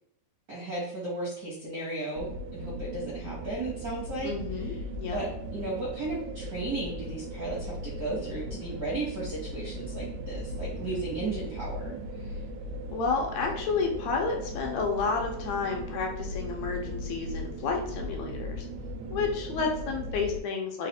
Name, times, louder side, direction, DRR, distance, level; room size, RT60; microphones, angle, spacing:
voice 1, 0.5-4.8 5.1-12.4, right 2 dB, 55° right, -6 dB, 1.0 m, -35 dB
sound 1, 2.1-20.4, equal, 80° right, 1.9 m, -38 dB
voice 2, 4.2-5.2 12.9-18.7 19.1-20.9, left 4 dB, 80° left, 1 dB, 2.0 m, -31 dB
4.8 x 2.5 x 4.0 m, 0.73 s
omnidirectional pair, 3.3 m